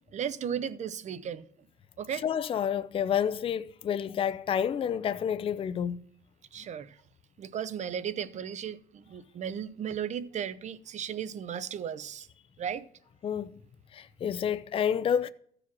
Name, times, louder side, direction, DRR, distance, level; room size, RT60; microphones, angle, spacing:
voice 1, 0.1-1.4 2.0-2.2 6.5-7.0 7.4-12.3 12.6-12.9, right 8 dB, 45° right, 0.6 m, -35 dB
voice 2, 2.2-6.0 13.2-13.5 13.9-15.3, left 8 dB, 35° left, 0.4 m, -29 dB
14.0 x 4.9 x 6.0 m
cardioid pair, 110°, 17 cm